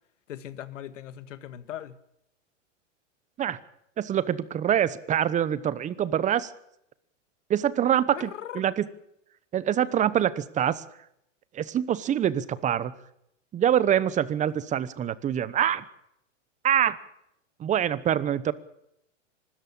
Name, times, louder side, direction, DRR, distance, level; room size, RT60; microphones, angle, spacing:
voice 1, 0.3-2.0 8.1-8.6, left 11 dB, 75° left, 13 dB, 1.8 m, -39 dB
voice 2, 4.0-6.5 7.5-8.8 9.5-10.8 11.5-12.9 13.5-15.8 16.6-17.0 17.6-18.5, right 10 dB, 20° right, 17 dB, 1.0 m, -25 dB
24.5 x 13.5 x 8.6 m, 0.77 s
hypercardioid pair, 130°, 37 cm